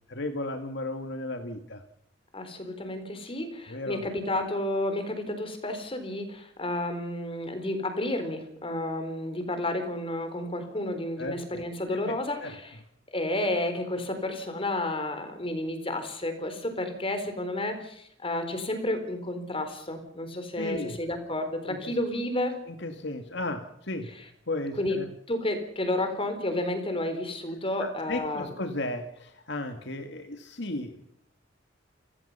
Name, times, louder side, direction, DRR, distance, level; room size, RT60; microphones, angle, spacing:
voice 1, 0.1-1.8 3.7-4.0 11.2-11.4 12.1-12.2 12.4-12.5 20.6-21.0 21.8-22.0 22.8-24.1 24.5-25.1 27.8-31.0, left 2 dB, 65° left, 5 dB, 2.1 m, -34 dB
voice 2, 2.3-12.8 13.1-22.6 24.2-24.3 24.8-25.0 25.3-28.5, left 1 dB, 30° left, 8 dB, 4.1 m, -31 dB
29.0 x 17.0 x 5.7 m, 0.71 s
head